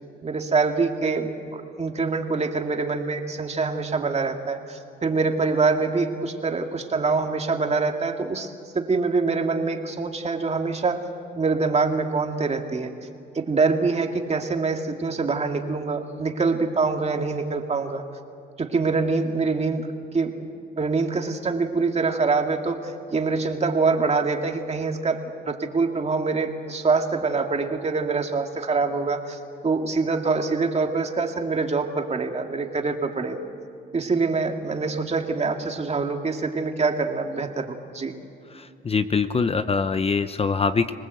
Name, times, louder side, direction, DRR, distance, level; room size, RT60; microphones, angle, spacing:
voice 1, 0.2-8.5 8.7-11.0 11.3-12.9 13.3-18.0 18.6-19.9 20.1-25.2 25.5-33.4 33.9-38.1, right 4 dB, 35° right, 4 dB, 2.2 m, -25 dB
voice 2, 38.5-40.9, left 5 dB, 30° left, 11 dB, 0.8 m, -23 dB
26.0 x 19.0 x 8.0 m, 2.6 s
cardioid pair, 90°, 20 cm